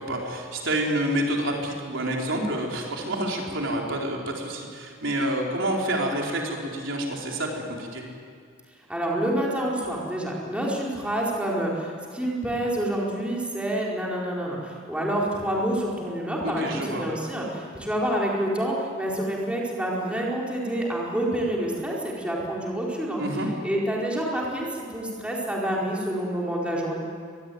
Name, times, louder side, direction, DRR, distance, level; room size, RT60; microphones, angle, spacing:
voice 1, 0.0-8.0 16.4-17.1 23.2-23.5, right 1 dB, 65° right, -1 dB, 4.4 m, -28 dB
voice 2, 8.9-23.2 23.6-27.0, right 1 dB, 5° right, -4 dB, 4.7 m, -28 dB
25.0 x 22.0 x 9.5 m, 2.2 s
head